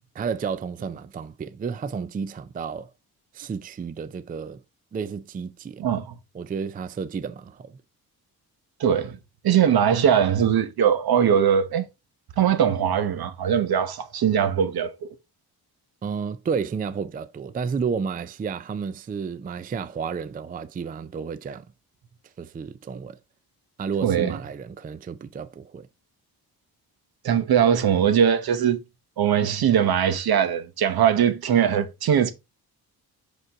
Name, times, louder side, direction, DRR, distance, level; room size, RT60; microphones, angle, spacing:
voice 1, 0.1-2.9 3.3-4.6 4.9-6.0 6.3-7.8 16.0-21.7 22.4-23.2 23.8-25.9, right 6 dB, 25° right, 0.4 m, -31 dB
voice 2, 5.8-6.1 8.8-9.2 9.4-11.9 12.4-15.1 24.0-24.4 27.2-28.8 29.2-32.3, right 8 dB, 70° right, 1.1 m, -21 dB
6.0 x 5.4 x 3.5 m
wide cardioid pair, 130°, 39 cm